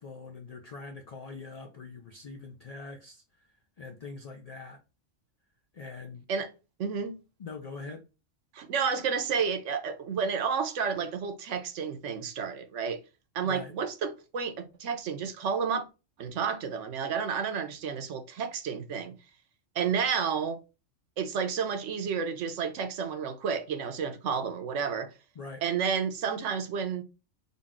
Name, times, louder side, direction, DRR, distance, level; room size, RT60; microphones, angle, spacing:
voice 1, 0.0-3.5 3.8-4.8 5.7-6.2 7.4-8.1 13.4-13.7 25.4-25.6, left 4 dB, 55° left, 0.4 m, -43 dB
voice 2, 6.8-7.1 8.5-13.0 13.3-15.8 16.2-19.1 19.7-20.6 21.2-25.1 25.6-27.0, right 6 dB, 75° right, 1.0 m, -31 dB
4.0 x 2.4 x 3.5 m
omnidirectional pair, 1.3 m